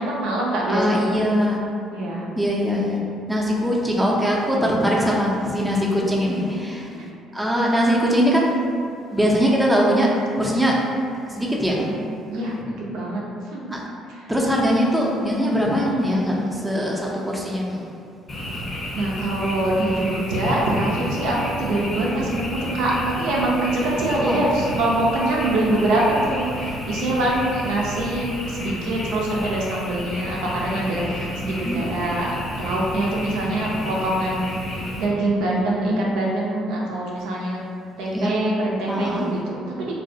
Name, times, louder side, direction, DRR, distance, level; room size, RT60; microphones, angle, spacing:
voice 1, 0.0-1.1 1.9-2.3 6.4-6.5 6.9-7.1 11.8-12.0 12.3-13.2 13.5-13.7 14.1-14.3 18.9-37.7 38.0-39.9, right 1 dB, 75° right, -4 dB, 0.4 m, -24 dB
voice 2, 0.7-1.6 2.4-3.0 3.3-6.8 7.3-8.6 9.1-10.8 11.3-11.9 13.7-13.8 14.3-17.8 24.1-24.4 31.4-31.8 38.1-38.3 38.9-39.3, equal, 10° right, -3 dB, 0.5 m, -21 dB
Frog, 18.3-35.0, left 1 dB, 40° left, 0.6 m, -32 dB
2.3 x 2.1 x 2.6 m, 2.3 s
hypercardioid pair, 60°, 0 cm